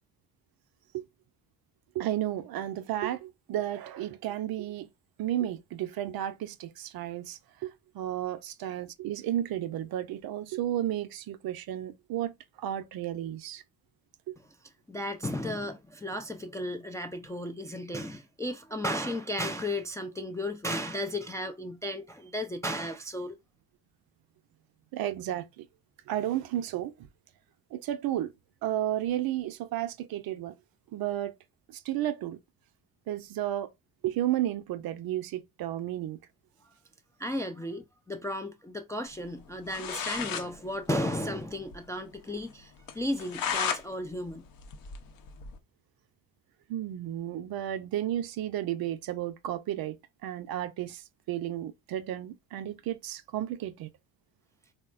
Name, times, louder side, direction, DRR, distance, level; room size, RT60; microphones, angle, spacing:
voice 1, 1.9-4.9 5.2-13.6 14.3-14.4 24.9-25.7 26.1-27.1 27.7-28.3 28.6-30.6 30.9-31.3 31.7-32.4 33.1-33.7 34.0-36.2 46.7-50.0 50.2-53.9, right 12 dB, 50° right, 0.6 m, -33 dB
voice 2, 14.9-23.4 37.2-44.5, left 1 dB, 5° left, 0.3 m, -34 dB
sound 1, 39.4-39.5 39.7-40.5 40.8-40.9 41.2-41.3 41.7-41.8 42.2-42.3 42.9-43.8 44.2-45.6, left 7 dB, 45° left, 0.7 m, -34 dB
3.5 x 2.1 x 2.4 m
hypercardioid pair, 55°, 46 cm